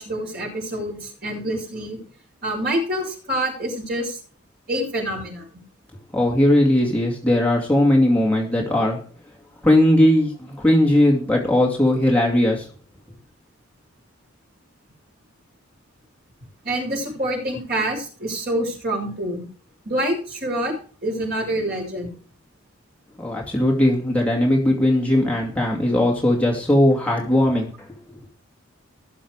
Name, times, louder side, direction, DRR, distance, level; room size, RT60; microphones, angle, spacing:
voice 1, 0.0-2.0 2.4-4.2 4.7-5.5 16.6-19.4 19.8-20.7 21.0-22.1, right 1 dB, 45° right, -1 dB, 6.6 m, -26 dB
voice 2, 6.1-9.0 9.6-12.7 23.2-27.7, left 1 dB, 5° left, -2 dB, 2.5 m, -18 dB
19.5 x 7.2 x 4.9 m, 0.40 s
head